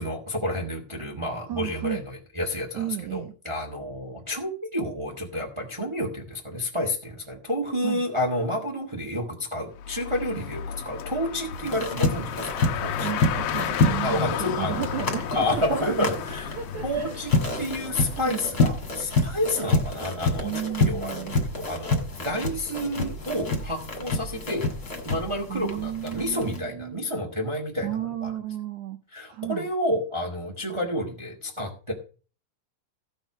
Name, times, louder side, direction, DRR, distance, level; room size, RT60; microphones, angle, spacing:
voice 1, 0.0-12.5 12.8-13.1 14.0-14.9 15.3-16.5 16.8-17.3 17.6-20.5 20.8-21.1 21.5-24.7 25.0-27.9 28.2-28.3 29.1-31.9, left 1 dB, 50° right, 1 dB, 0.3 m, -30 dB
voice 2, 1.5-2.0 2.8-3.3 7.8-8.0 13.0-16.1 16.6-17.2 18.2-18.4 20.4-21.4 25.5-27.0 27.8-29.0 29.3-29.7, right 12 dB, 75° right, 6 dB, 1.8 m, -33 dB
Car, 9.7-18.3, left 11 dB, 80° left, 2.4 m, -34 dB
sound 1, 11.5-26.6, left 2 dB, 30° left, 2.1 m, -28 dB
16.0 x 5.6 x 6.1 m, 0.38 s
omnidirectional pair, 4.2 m